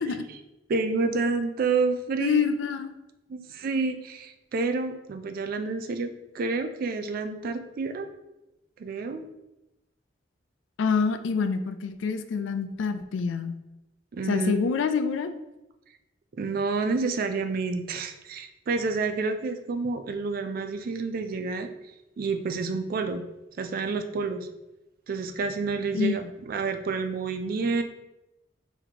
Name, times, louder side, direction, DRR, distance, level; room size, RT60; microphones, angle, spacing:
voice 1, 0.7-2.5 3.3-8.1 8.8-9.3 14.1-14.6 16.3-21.7 22.2-23.2 23.6-24.5 25.1-27.8, right 4 dB, 50° right, 7 dB, 0.3 m, -29 dB
voice 2, 2.2-2.9 10.8-13.5 14.3-15.3 25.9-26.3, left 5 dB, 75° left, 9 dB, 0.3 m, -26 dB
4.1 x 3.0 x 2.8 m, 0.94 s
head